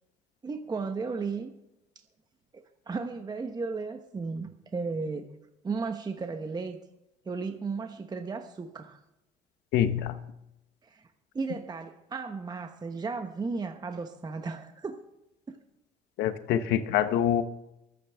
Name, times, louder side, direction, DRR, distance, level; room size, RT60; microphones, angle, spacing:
voice 1, 0.4-1.5 2.5-5.3 5.6-6.8 7.3-9.0 10.8-11.0 11.3-15.0 15.5-15.6, right 4 dB, 25° right, 6 dB, 1.0 m, -35 dB
voice 2, 9.7-10.2 16.2-17.4, left 10 dB, 85° left, 10 dB, 1.1 m, -25 dB
24.0 x 9.1 x 3.5 m, 0.88 s
cardioid pair, 110°, 17 cm